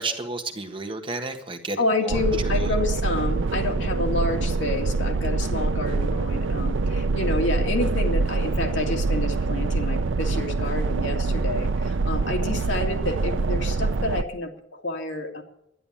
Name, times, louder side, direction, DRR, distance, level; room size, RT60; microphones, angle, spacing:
voice 1, 0.0-1.8 2.0-2.7, right 3 dB, 25° right, 5 dB, 1.5 m, -32 dB
voice 2, 1.8-15.4, left 2 dB, 75° left, 2 dB, 2.3 m, -29 dB
sound 1, 2.1-14.2, right 3 dB, 85° right, 0.5 m, -25 dB
11.0 x 11.0 x 8.6 m, 0.77 s
head